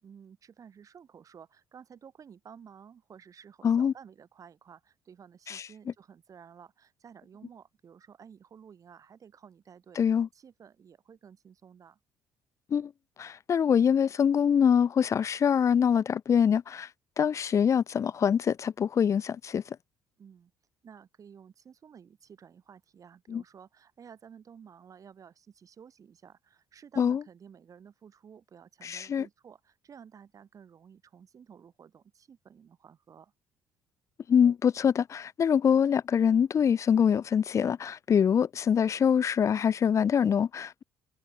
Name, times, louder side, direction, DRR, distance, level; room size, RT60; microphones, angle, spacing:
voice 1, 0.0-10.0 10.3-12.0 20.2-20.5 20.8-33.3, right 7 dB, 45° right, 5.4 m, -53 dB
voice 2, 10.0-10.3 12.7-12.9 13.2-16.9 17.2-19.6 23.3-23.4 27.0-27.2 28.8-29.3 34.3-40.8, left 7 dB, 40° left, 0.5 m, -24 dB
supercardioid pair, 75°, 8 cm